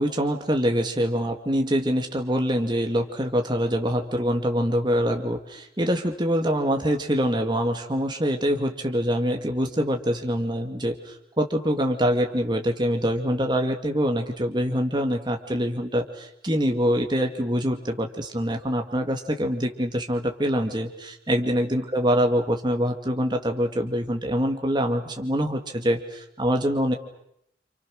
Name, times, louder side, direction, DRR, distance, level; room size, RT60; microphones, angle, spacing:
voice 1, 0.0-26.9, equal, 25° right, 4 dB, 2.2 m, -25 dB
29.5 x 27.5 x 6.5 m, 0.75 s
head